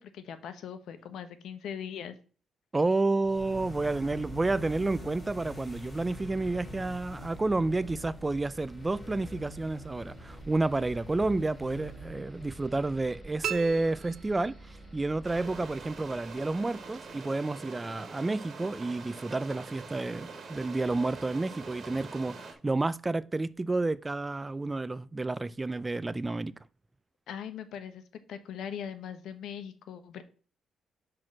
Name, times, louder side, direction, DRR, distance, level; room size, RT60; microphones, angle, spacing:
voice 1, 0.0-2.2 27.3-28.0 28.3-30.2, left 8 dB, 75° left, 1.1 m, -40 dB
voice 2, 2.7-26.5, right 2 dB, 20° right, 0.3 m, -30 dB
sound 1, 3.2-17.1, left 1 dB, 20° left, 3.3 m, -45 dB
sound 2, 13.4-15.0, right 9 dB, 60° right, 0.6 m, -38 dB
sound 3, 15.2-22.5, right 4 dB, 45° right, 1.9 m, -45 dB
6.0 x 4.7 x 6.1 m
cardioid pair, 90°, 0 cm